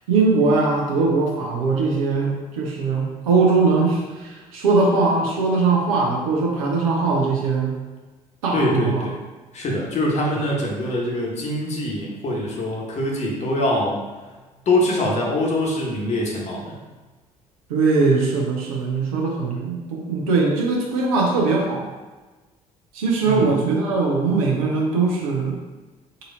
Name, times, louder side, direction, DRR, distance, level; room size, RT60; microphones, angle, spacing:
voice 1, 0.1-7.8 8.4-9.1 17.7-21.9 22.9-25.6, right 4 dB, 70° right, -2 dB, 0.9 m, -20 dB
voice 2, 8.5-9.1 9.5-14.0 14.7-16.8 23.2-23.5, left 1 dB, 35° left, -2 dB, 1.2 m, -23 dB
4.2 x 2.8 x 3.9 m, 1.2 s
figure-of-eight pair, 55°, 19 cm